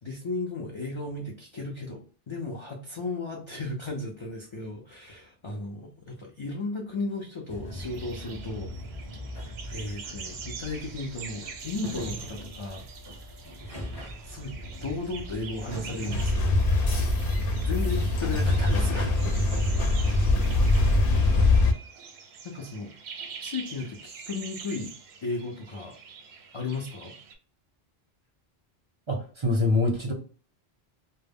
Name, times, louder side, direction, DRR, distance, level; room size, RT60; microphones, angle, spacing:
voice 1, 0.0-8.7 9.7-12.9 14.2-14.5 14.8-17.1 17.5-19.2 22.4-22.9 23.4-24.9 25.2-26.0 26.5-27.1, left 3 dB, 50° left, -1 dB, 0.3 m, -35 dB
sound 1, 7.5-16.3, equal, 25° left, 0.7 m, -40 dB
sound 2, 7.7-27.3, right 6 dB, 85° right, 0.8 m, -45 dB
sound 3, 16.1-21.7, left 2 dB, 65° left, 0.7 m, -23 dB
voice 2, 29.1-30.1, left 2 dB, 40° right, 1 dB, 0.5 m, -25 dB
2.1 x 2.0 x 3.4 m, 0.41 s
omnidirectional pair, 1.1 m